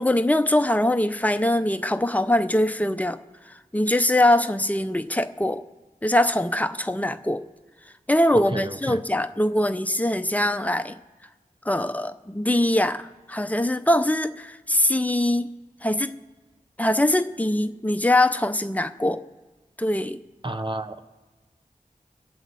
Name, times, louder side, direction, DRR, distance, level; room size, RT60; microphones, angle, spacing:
voice 1, 0.0-3.2 3.5-5.6 6.0-7.4 8.1-11.0 11.6-15.5 15.8-16.2 16.8-19.2 19.8-20.2, left 1 dB, 10° left, 0.6 m, -22 dB
voice 2, 8.3-9.0 20.4-21.0, right 1 dB, 35° right, 0.8 m, -31 dB
22.5 x 7.8 x 4.1 m
wide cardioid pair, 45°, 15 cm